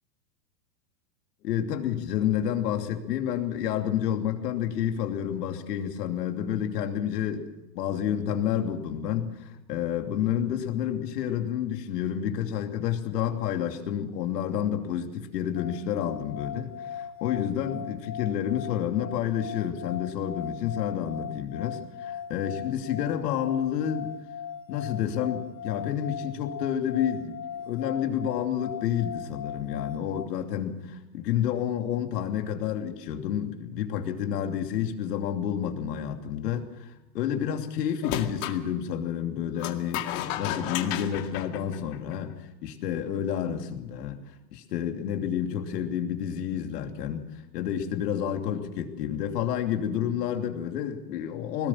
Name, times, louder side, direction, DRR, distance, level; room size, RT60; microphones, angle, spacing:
voice 1, 1.4-24.1 24.7-44.2 44.5-51.7, left 9 dB, 70° left, 5 dB, 2.9 m, -30 dB
sound 1, 15.6-30.3, left 8 dB, 25° left, 0.8 m, -39 dB
sound 2, 38.0-38.6 39.6-42.3, left 12 dB, 50° left, 2.2 m, -33 dB
21.5 x 19.0 x 7.3 m, 0.98 s
hypercardioid pair, 130°, 50 cm